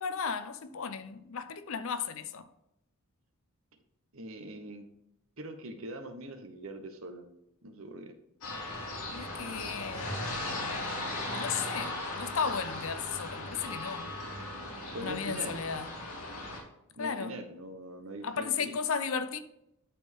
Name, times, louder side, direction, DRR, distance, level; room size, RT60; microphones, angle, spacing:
voice 1, 0.0-2.5 9.1-10.3 11.3-14.1 15.0-15.9 17.0-17.4 18.2-19.4, left 6 dB, 60° left, 0.6 m, -35 dB
voice 2, 4.1-4.9 5.4-7.2 7.6-8.1 14.9-15.6 16.9-18.8, right 1 dB, 65° right, 1.0 m, -42 dB
sound 1, 8.4-16.6, left 2 dB, 85° left, 2.3 m, -37 dB
11.0 x 4.3 x 3.6 m
head